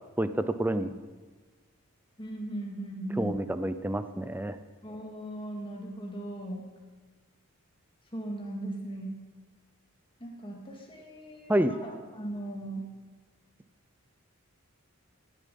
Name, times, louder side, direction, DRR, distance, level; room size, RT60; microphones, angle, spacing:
voice 1, 0.2-0.9 3.2-4.6 11.5-11.7, right 1 dB, 10° right, 11 dB, 0.4 m, -28 dB
voice 2, 2.2-3.4 4.8-6.7 8.1-9.2 10.2-12.8, right 1 dB, 25° left, 0 dB, 2.1 m, -38 dB
18.0 x 7.2 x 5.4 m, 1.3 s
head